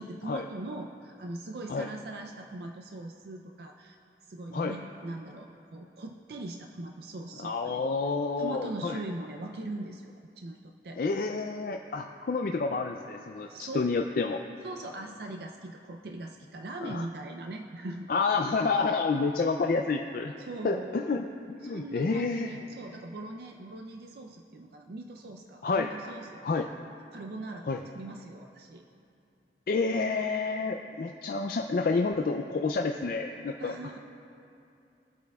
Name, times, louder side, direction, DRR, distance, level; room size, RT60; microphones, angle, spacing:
voice 1, 0.0-4.0 4.3-7.9 8.4-11.0 13.5-13.9 14.6-18.1 20.4-21.0 21.6-26.7 27.1-27.7 27.9-28.8 33.6-34.0, right 2 dB, 65° right, 3 dB, 0.5 m, -41 dB
voice 2, 7.4-9.0 11.0-14.4 16.8-17.1 18.1-20.3 20.6-22.5 25.6-25.9 26.4-26.7 27.7-27.8 29.7-33.7, left 4 dB, 55° left, 3 dB, 0.3 m, -29 dB
24.0 x 8.3 x 2.3 m, 2.7 s
head